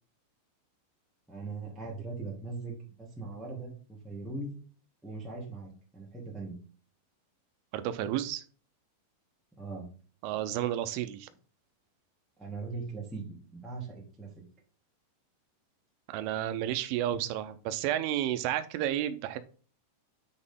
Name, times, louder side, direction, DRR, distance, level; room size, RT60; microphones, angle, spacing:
voice 1, 1.3-4.5 5.0-6.5 9.6-9.9 12.4-14.3 17.1-17.2, right 3 dB, ahead, -3 dB, 0.9 m, -40 dB
voice 2, 7.7-8.4 10.2-11.3 16.1-19.4, right 12 dB, 85° right, 11 dB, 3.2 m, -31 dB
9.7 x 4.2 x 3.7 m, 0.40 s
omnidirectional pair, 5.6 m